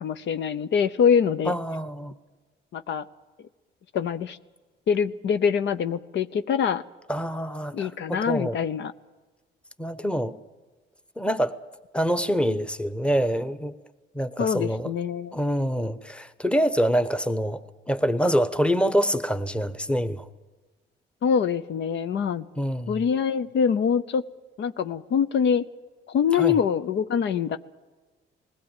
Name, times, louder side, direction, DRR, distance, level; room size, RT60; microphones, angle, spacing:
voice 1, 0.0-1.5 2.7-3.1 3.9-4.4 4.9-6.8 7.7-8.9 14.4-15.4 21.2-22.4 22.9-24.2 24.6-25.6 26.1-27.6, left 7 dB, 65° left, 0.7 m, -24 dB
voice 2, 1.5-2.1 7.1-8.6 9.8-10.4 11.2-11.6 11.9-13.7 14.1-14.9 15.3-17.6 17.9-20.2 22.6-23.0 26.3-26.6, equal, 5° left, 1.0 m, -25 dB
20.5 x 16.0 x 9.0 m
cardioid pair, 90°, 20 cm